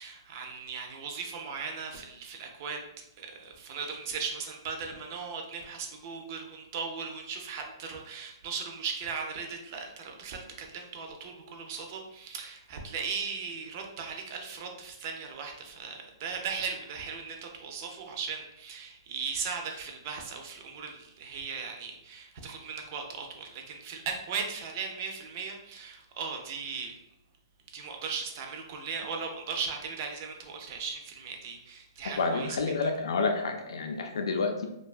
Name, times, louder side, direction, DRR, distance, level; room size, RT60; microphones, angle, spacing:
voice 1, 0.0-2.8 3.2-26.9 27.7-32.9, right 5 dB, 35° right, 3 dB, 0.4 m, -38 dB
voice 2, 32.2-34.7, left 4 dB, 85° left, 5 dB, 0.4 m, -29 dB
2.6 x 2.2 x 2.3 m, 0.83 s
hypercardioid pair, 165°, 3 cm